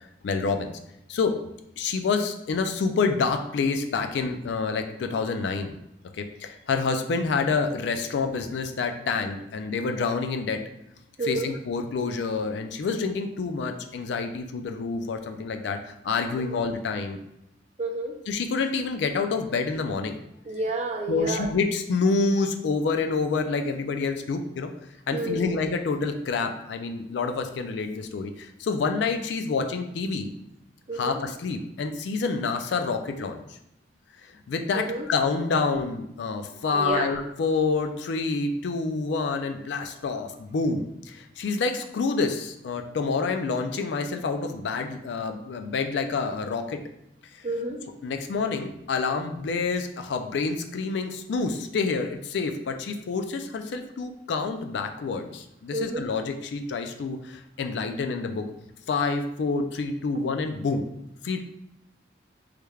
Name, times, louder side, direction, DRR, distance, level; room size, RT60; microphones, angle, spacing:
voice 1, 0.2-0.7 1.1-1.4 1.8-5.8 6.1-10.6 11.2-17.2 18.3-20.2 21.1-24.7 25.1-30.3 30.9-33.4 34.5-46.8 48.0-58.5 58.9-60.8 61.2-61.4, left 4 dB, 65° left, 6 dB, 0.3 m, -28 dB
voice 2, 11.2-11.5 16.5-16.6 17.8-18.1 20.5-21.5 25.1-25.6 30.9-31.2 34.7-35.1 36.7-37.1 47.4-47.8 55.7-56.0, right 2 dB, 35° right, 1 dB, 0.4 m, -29 dB
3.2 x 3.2 x 2.3 m, 0.83 s
head